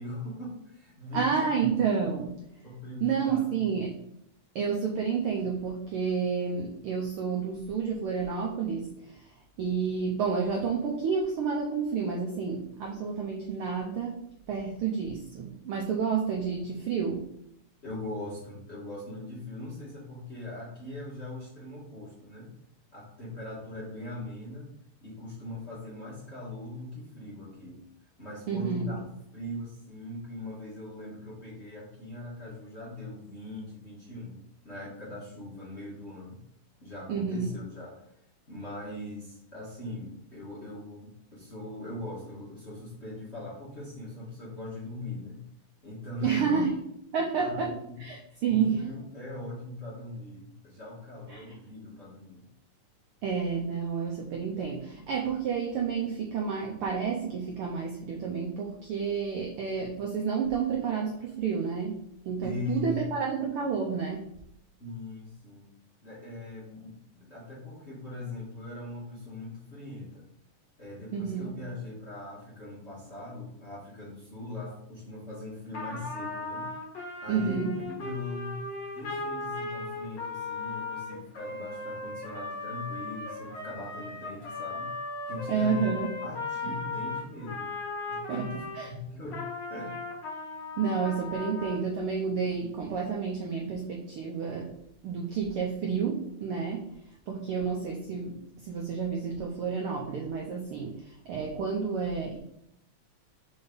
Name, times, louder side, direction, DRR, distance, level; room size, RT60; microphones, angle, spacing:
voice 1, 0.0-1.5 2.6-3.6 17.8-22.5 22.9-24.7 25.0-27.8 28.2-29.0 29.3-36.4 36.8-38.0 38.5-45.4 45.8-46.6 47.4-48.0 48.5-52.4 62.4-63.0 64.8-65.7 66.0-70.3 70.8-76.7 77.2-77.7 77.9-78.6 78.9-84.9 85.3-85.9 86.2-87.7 88.1-89.4 89.7-90.0, left 2 dB, 30° left, -8 dB, 1.3 m, -40 dB
voice 2, 1.1-2.4 3.0-4.0 4.5-9.3 9.6-17.3 28.5-29.0 37.1-37.5 46.2-46.8 47.1-48.9 51.3-51.6 53.2-64.3 71.1-71.5 77.3-77.8 85.5-86.1 86.7-86.8 88.3-88.9 90.8-94.8 95.0-97.0 97.3-102.4, right 6 dB, 80° right, 0 dB, 1.2 m, -30 dB
Trumpet, 75.7-88.8 89.3-91.8, left 3 dB, 45° left, 1.7 m, -37 dB
4.7 x 4.0 x 5.2 m, 0.74 s
omnidirectional pair, 3.4 m